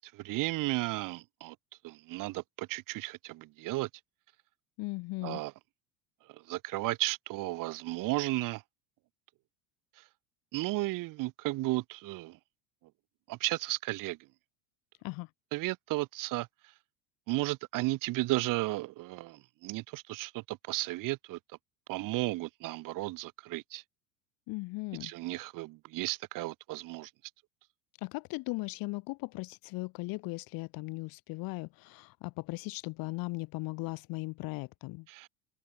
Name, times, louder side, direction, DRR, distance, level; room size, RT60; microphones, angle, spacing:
voice 1, 0.0-1.6 1.8-3.9 5.2-5.5 6.3-8.6 10.5-12.4 13.3-14.2 15.5-16.5 17.3-21.4 21.9-23.8 25.0-27.1 35.1-35.3, right 19 dB, 45° right, 0.9 m, -34 dB
voice 2, 4.8-5.4 15.0-15.3 24.5-25.1 28.0-35.1, left 24 dB, 50° left, 0.8 m, -38 dB
open air
supercardioid pair, 120°, 44 cm